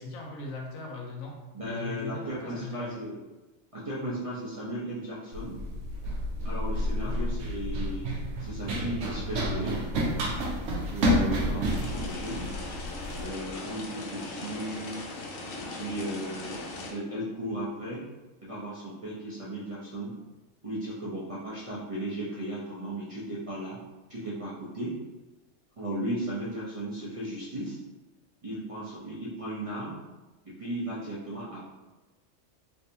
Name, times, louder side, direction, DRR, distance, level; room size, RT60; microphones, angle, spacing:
voice 1, 0.0-2.9 7.0-7.4 11.3-11.7, left 2 dB, 85° left, -1 dB, 1.2 m, -40 dB
voice 2, 1.5-3.2 3.7-5.6 6.4-9.8 10.8-12.5 13.2-15.0 15.6-16.6 16.9-18.0 18.4-20.2 20.6-23.8 24.1-25.0 25.8-27.8 28.4-30.0 30.4-31.6, right 1 dB, 35° right, -8 dB, 0.6 m, -36 dB
Run, 5.3-13.3, equal, 70° right, 1.0 m, -30 dB
sound 1, 11.6-16.9, left 2 dB, 60° left, 0.6 m, -39 dB
3.4 x 3.2 x 2.8 m, 1.1 s
omnidirectional pair, 1.4 m